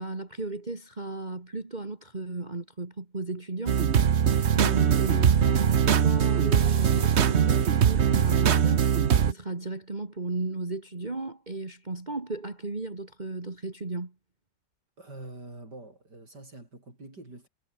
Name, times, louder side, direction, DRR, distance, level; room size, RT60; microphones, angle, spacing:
voice 1, 0.0-3.8 4.5-8.9 9.2-14.1, right 2 dB, 25° right, 2.4 m, -35 dB
sound 1, 3.7-9.3, right 8 dB, 45° right, 1.0 m, -22 dB
voice 2, 15.0-17.5, right 2 dB, 65° right, 7.6 m, -45 dB
omnidirectional pair, 1.9 m